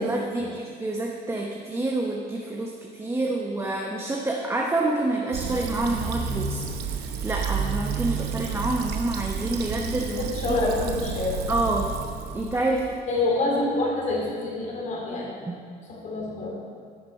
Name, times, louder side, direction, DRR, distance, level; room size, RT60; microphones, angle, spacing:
voice 1, 0.0-10.6 11.5-11.9 12.3-12.9, right 2 dB, 15° right, 0 dB, 0.9 m, -28 dB
Fill (with liquid), 5.3-13.0, right 6 dB, 75° right, 0.9 m, -31 dB
voice 2, 10.1-11.5 13.1-15.4 15.9-16.5, left 2 dB, 50° left, -2 dB, 2.7 m, -27 dB
10.0 x 6.7 x 5.4 m, 2.2 s
cardioid pair, 110°, 17 cm